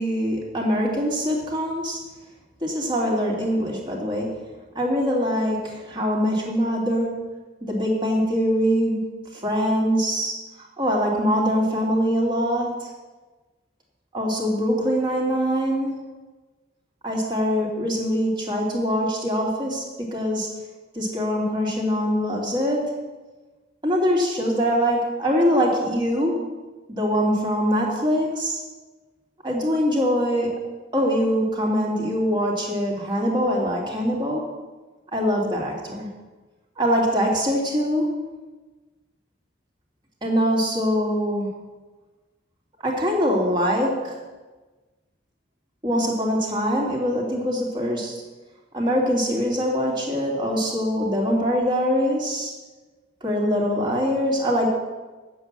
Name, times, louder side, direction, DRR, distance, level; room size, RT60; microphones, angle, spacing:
voice 1, 0.0-2.0 2.6-4.4 4.7-7.2 7.6-9.0 9.3-10.3 10.8-12.9 14.1-16.0 17.0-20.5 20.9-23.0 23.8-26.5 26.9-28.6 29.4-30.6 30.9-34.4 35.1-36.1 36.8-38.1 40.2-41.5 42.8-44.2 45.8-48.2 48.7-52.5 53.2-54.7, equal, 25° right, -3 dB, 2.5 m, -23 dB
9.2 x 7.9 x 7.3 m, 1.3 s
head